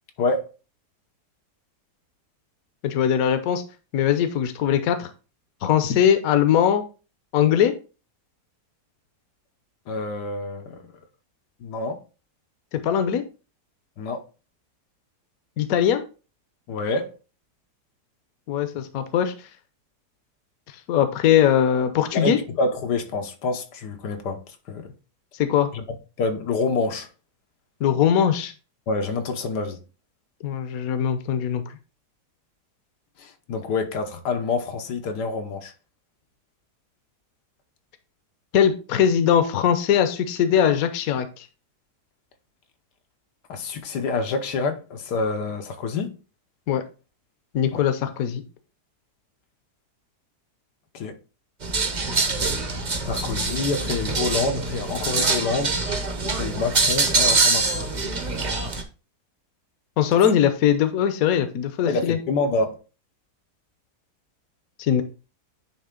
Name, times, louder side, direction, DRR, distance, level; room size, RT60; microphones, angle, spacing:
voice 1, 0.2-0.5 9.9-10.8 11.6-12.0 14.0-14.2 16.7-17.1 22.1-24.4 24.7-24.9 25.7-25.8 26.2-27.1 28.9-29.8 33.2-35.7 43.5-46.1 47.7-47.8 50.9-51.2 53.0-55.8 56.3-57.8 61.9-62.8, left 3 dB, 85° left, 1.5 m, -27 dB
voice 2, 2.8-3.6 3.9-5.1 5.6-6.8 7.3-7.7 12.7-13.2 15.6-16.0 18.5-19.3 20.9-22.4 25.4-25.7 27.8-28.5 30.4-31.6 38.5-41.4 46.7-46.8 47.5-48.4 60.0-62.2 64.8-65.0, left 9 dB, 65° left, 1.1 m, -21 dB
sound 1, 51.6-58.8, right 3 dB, 35° right, 0.8 m, -24 dB
9.9 x 3.3 x 3.7 m
omnidirectional pair, 1.7 m